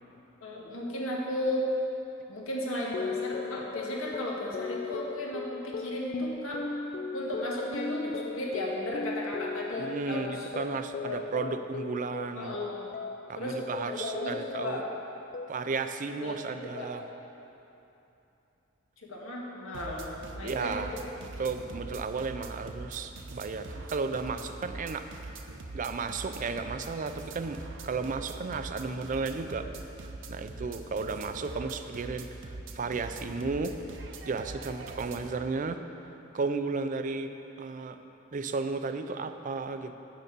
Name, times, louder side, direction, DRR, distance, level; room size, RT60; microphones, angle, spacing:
voice 1, 0.4-1.7 2.3-6.6 7.1-10.5 11.0-11.2 12.4-12.9 13.3-13.6 13.8-14.8 16.2-16.4 16.6-16.9 19.1-20.1 20.4-20.8 21.4-21.5, left 1 dB, 90° left, -3 dB, 1.7 m, -35 dB
sound 1, 2.9-13.4 13.7-15.0 15.3-15.9, left 4 dB, 40° left, 0.4 m, -37 dB
voice 2, 9.8-12.6 13.3-14.8 15.5-17.0 20.4-20.9 21.2-25.1 25.7-29.7 30.3-32.3 32.7-33.8 34.2-35.8 36.3-38.0 38.3-40.0, right 4 dB, 40° right, 9 dB, 0.4 m, -34 dB
sound 2, 19.7-35.4, right 2 dB, 65° right, 0.7 m, -43 dB
8.6 x 6.6 x 6.7 m, 2.9 s
head